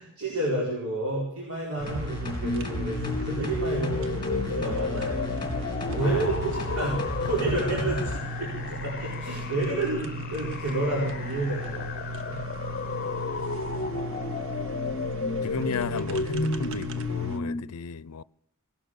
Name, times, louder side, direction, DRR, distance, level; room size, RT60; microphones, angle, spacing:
voice 1, 0.0-5.3 5.9-12.4, right 2 dB, 80° right, 4.6 m, -30 dB
sound 1, 1.8-17.4, right 1 dB, 60° right, 1.3 m, -37 dB
sound 2, 1.9-8.2 8.6-8.7, left 1 dB, 20° left, 3.2 m, -35 dB
sound 3, 2.2-17.6, left 3 dB, 40° left, 0.8 m, -33 dB
voice 2, 6.0-6.6 15.4-18.2, left 5 dB, 85° left, 0.5 m, -34 dB
18.0 x 12.0 x 6.4 m
head